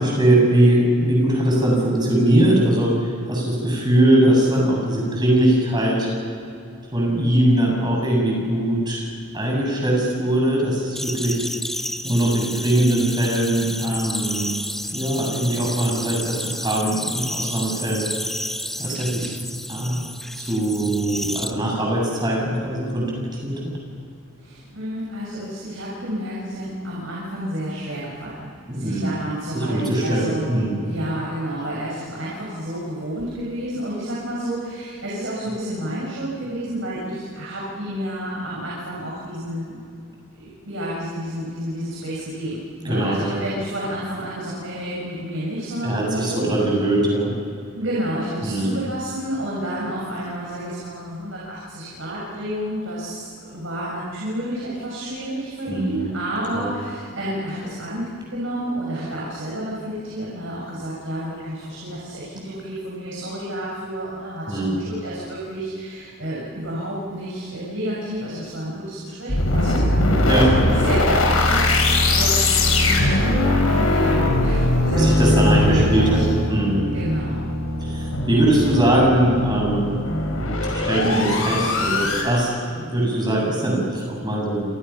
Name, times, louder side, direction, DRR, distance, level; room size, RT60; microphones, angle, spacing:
voice 1, 0.0-6.1 6.9-9.1 9.3-11.5 12.0-14.5 14.9-18.1 18.8-19.4 19.7-20.0 20.3-23.6 28.7-29.1 29.5-30.8 42.8-43.4 45.8-47.3 48.4-48.8 55.7-56.1 56.5-56.7 64.5-64.8 70.2-70.6 74.9-76.9 77.8-80.0 80.7-84.7, right 1 dB, 20° right, -1 dB, 7.6 m, -21 dB
sound 1, 11.0-21.5, left 1 dB, ahead, 0.9 m, -31 dB
voice 2, 24.4-39.8 40.3-46.5 47.7-76.2 76.9-77.4, right 1 dB, 65° right, -5 dB, 6.7 m, -30 dB
sound 2, 69.3-82.2, left 1 dB, 85° left, 5.7 m, -20 dB
29.0 x 28.5 x 5.9 m, 2.5 s
head